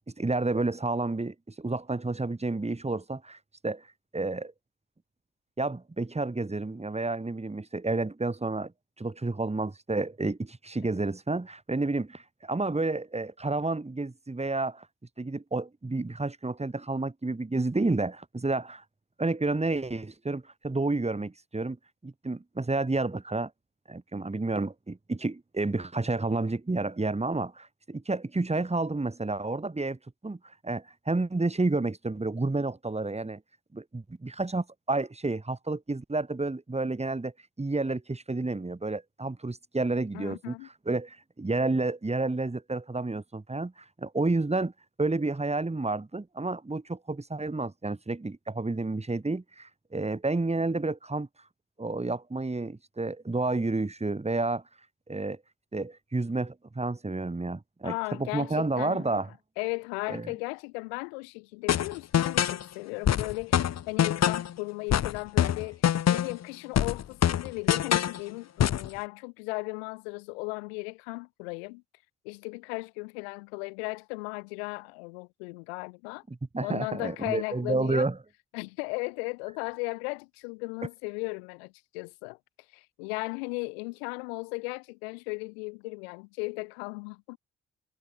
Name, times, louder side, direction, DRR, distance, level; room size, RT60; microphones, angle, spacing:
voice 1, 0.2-3.9 4.1-4.5 5.6-8.7 9.0-14.9 15.2-18.8 19.2-21.8 22.0-23.5 23.9-30.4 30.6-33.4 33.7-37.3 37.6-40.5 40.8-44.7 45.0-51.3 51.8-54.6 55.1-55.4 55.7-59.3 60.1-60.3 76.5-78.2, right 3 dB, 20° right, 5.1 m, -30 dB
voice 2, 40.1-40.7 57.8-59.1 59.6-71.8 72.2-76.2 76.6-78.1 78.5-82.4 82.7-87.4, left 31 dB, 85° left, 7.5 m, -36 dB
sound 1, 61.7-62.6 63.1-64.5 64.9-66.4 66.8-68.2 68.6-68.9, left 10 dB, 55° left, 1.7 m, -25 dB
hypercardioid pair, 50°, 31 cm